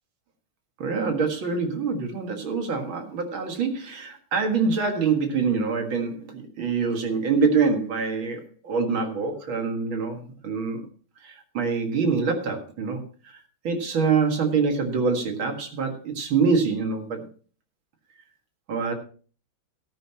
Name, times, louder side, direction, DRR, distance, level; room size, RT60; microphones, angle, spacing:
voice 1, 0.8-10.9 11.2-17.3 18.7-18.9, right 5 dB, 70° right, 4 dB, 2.5 m, -25 dB
13.5 x 11.5 x 2.9 m, 0.40 s
omnidirectional pair, 2.3 m